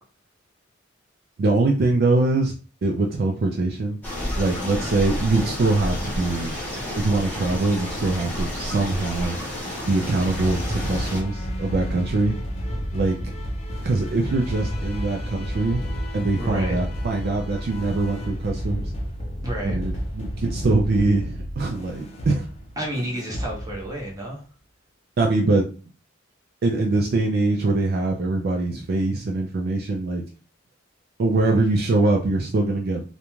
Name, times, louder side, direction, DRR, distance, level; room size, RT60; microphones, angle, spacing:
voice 1, 1.4-2.5 2.8-4.0 4.4-6.5 7.0-9.4 9.8-12.4 12.9-13.2 13.8-15.8 16.1-18.9 19.6-22.5 25.2-25.7 26.6-30.2 31.2-33.0, right 2 dB, 50° right, 1 dB, 0.3 m, -23 dB
sound 1, 4.0-11.2, left 1 dB, 10° left, 0.9 m, -30 dB
sound 2, 10.2-24.3, equal, 30° left, 0.5 m, -31 dB
voice 2, 16.4-16.8 19.4-19.8 22.8-24.4 31.5-31.6, right 1 dB, 20° right, -3 dB, 0.7 m, -30 dB
2.4 x 2.2 x 3.0 m, 0.37 s
head